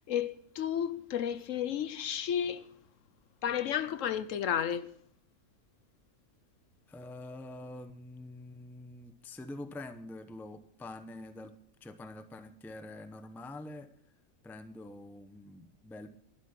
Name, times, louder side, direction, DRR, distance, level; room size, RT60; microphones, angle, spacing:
voice 1, 0.1-2.7 3.4-4.9, left 9 dB, 70° left, 1.0 m, -32 dB
voice 2, 6.9-11.5 11.8-13.9 14.4-16.1, left 2 dB, ahead, 0.5 m, -46 dB
11.5 x 11.5 x 5.8 m
omnidirectional pair, 1.5 m